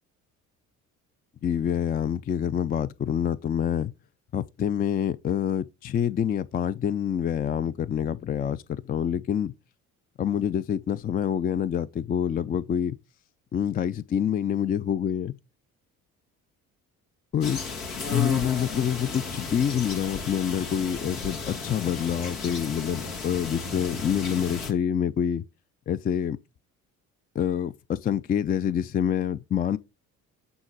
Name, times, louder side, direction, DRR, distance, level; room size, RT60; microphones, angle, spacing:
voice 1, 1.4-3.9 4.3-9.5 10.2-13.0 13.5-15.3 17.3-17.6 18.1-25.4 25.9-26.4 27.3-29.8, left 9 dB, 20° left, 0.4 m, -27 dB
sound 1, 17.4-24.7, left 4 dB, 85° left, 1.4 m, -34 dB
8.7 x 3.8 x 4.9 m
hypercardioid pair, 50°, 43 cm